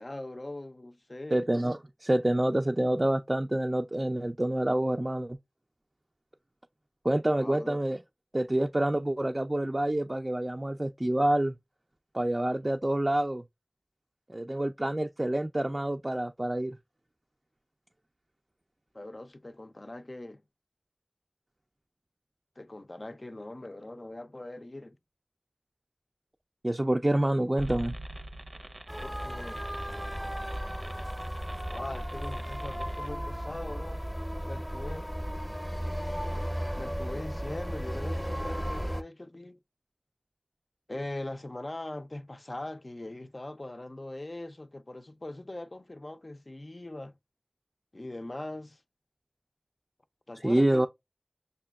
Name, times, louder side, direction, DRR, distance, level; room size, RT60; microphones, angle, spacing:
voice 1, 0.0-1.5 7.4-7.8 18.9-20.4 22.6-25.0 29.0-29.6 31.7-34.0 34.5-35.1 36.8-39.6 40.9-47.1 47.9-48.8 50.3-50.9, left 1 dB, 60° left, 0.4 m, -41 dB
voice 2, 1.3-5.4 7.0-8.0 8.3-11.6 12.1-13.4 14.3-16.8 26.6-28.0 50.4-50.9, right 1 dB, 40° right, 0.3 m, -27 dB
sound 1, 27.6-33.1, right 1 dB, 80° right, 0.6 m, -44 dB
sound 2, 28.9-39.0, equal, 5° left, 0.6 m, -35 dB
6.5 x 2.2 x 2.2 m
wide cardioid pair, 45°, 0 cm